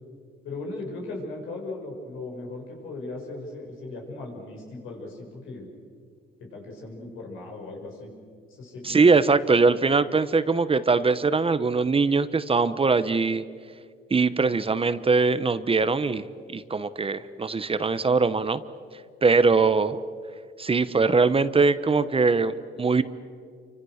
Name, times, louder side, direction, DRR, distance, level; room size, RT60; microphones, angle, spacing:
voice 1, 0.4-5.7 6.5-8.1 8.5-9.2, left 2 dB, 85° left, 0 dB, 6.6 m, -37 dB
voice 2, 8.8-13.4 14.1-18.6 19.2-20.0 20.6-23.0, right 4 dB, 30° right, 13 dB, 1.0 m, -22 dB
28.5 x 25.5 x 6.6 m, 2.1 s
cardioid pair, 90°, 20 cm